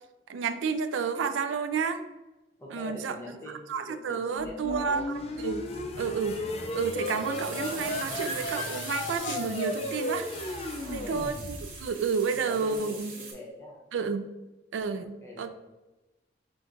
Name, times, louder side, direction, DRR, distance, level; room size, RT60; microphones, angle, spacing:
voice 1, 0.3-2.0 2.7-3.2 3.5-5.0 5.4-5.6 6.0-6.4 6.7-10.6 10.9-13.1 13.9-14.3 14.7-15.5, right 5 dB, 85° right, 9 dB, 0.3 m, -31 dB
voice 2, 2.6-5.3 10.7-11.4 12.3-13.8 15.0-15.5, left 1 dB, 15° left, -2 dB, 0.7 m, -43 dB
sound 1, 4.3-11.9, left 1 dB, 30° left, 0.3 m, -35 dB
sound 2, 5.8-10.4, left 2 dB, 80° left, 0.6 m, -43 dB
sound 3, 6.7-13.3, right 4 dB, 45° right, 1.2 m, -43 dB
5.7 x 2.5 x 2.5 m, 1.1 s
head